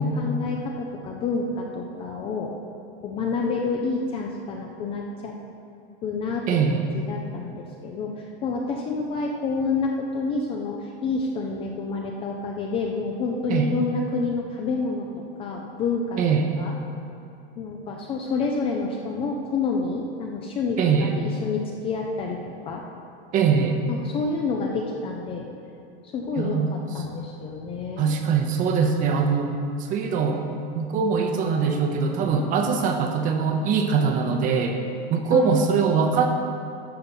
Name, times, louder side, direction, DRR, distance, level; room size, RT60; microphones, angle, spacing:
voice 1, 0.0-2.5 3.0-5.3 6.0-15.1 15.4-16.2 16.6-16.7 17.6-22.8 23.9-25.5 26.0-26.6 26.9-28.1 35.3-35.5, left 4 dB, 20° left, 0 dB, 0.4 m, -28 dB
voice 2, 6.5-6.8 13.5-13.7 16.2-16.5 20.8-21.1 23.3-23.8 26.4-26.7 28.0-30.4 30.7-34.8 35.1-36.3, right 5 dB, 25° right, 4 dB, 0.7 m, -22 dB
12.0 x 4.1 x 7.0 m, 2.7 s
supercardioid pair, 170°, 31 cm